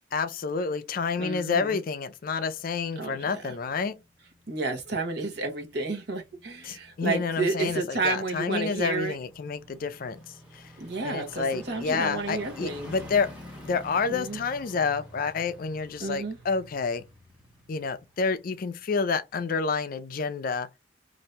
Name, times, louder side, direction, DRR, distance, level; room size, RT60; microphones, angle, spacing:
voice 1, 0.1-4.0 6.6-10.2 10.5-10.6 11.0-13.3 13.6-17.0 17.7-20.7, left 5 dB, 50° left, 0.4 m, -29 dB
voice 2, 1.2-1.8 3.0-3.4 4.5-9.2 10.8-12.9 14.1-14.4 16.0-16.4, right 3 dB, 65° right, 1.1 m, -31 dB
sound 1, 3.3-18.9 19.3-19.4, equal, 10° right, 1.2 m, -49 dB
2.8 x 2.6 x 3.2 m
head